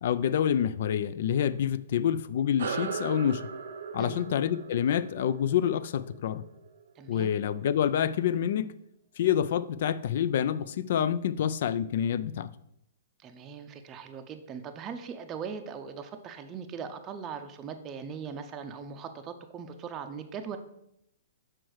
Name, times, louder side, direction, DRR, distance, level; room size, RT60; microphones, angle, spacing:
voice 1, 0.0-3.4 3.9-6.4 7.1-8.7 9.2-12.5, left 9 dB, 60° left, 0.3 m, -27 dB
sound 1, 2.6-7.4, right 5 dB, 70° right, 0.7 m, -39 dB
voice 2, 7.0-7.3 13.2-20.6, right 6 dB, 25° right, 0.5 m, -40 dB
6.2 x 4.5 x 4.7 m
hypercardioid pair, 135°, 0 cm